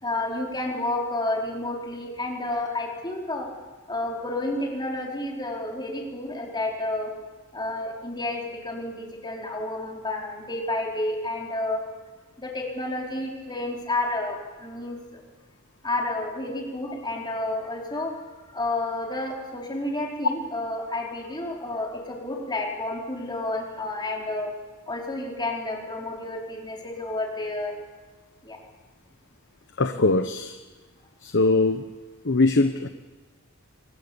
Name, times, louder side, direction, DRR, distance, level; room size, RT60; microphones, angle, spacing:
voice 1, 0.0-3.5 3.9-7.1 7.5-11.8 12.4-15.2 15.8-18.1 18.5-24.5 24.9-27.7 28.4-28.6, left 2 dB, 20° left, -1 dB, 4.5 m, -30 dB
voice 2, 29.8-30.5 31.2-31.8 32.2-32.9, left 3 dB, 60° left, 8 dB, 1.1 m, -21 dB
24.0 x 22.0 x 7.1 m, 1.3 s
head